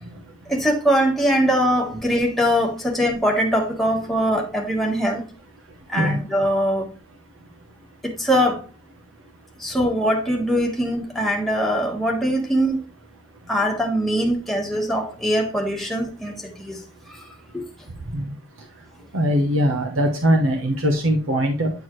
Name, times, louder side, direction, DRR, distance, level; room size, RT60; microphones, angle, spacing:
voice 1, 0.5-5.2 5.9-6.9 8.0-8.6 9.6-12.8 13.5-16.7 17.5-17.6, equal, ahead, 1.3 m, -22 dB
voice 2, 19.1-21.7, equal, 90° right, 1.0 m, -21 dB
9.3 x 4.6 x 3.1 m
head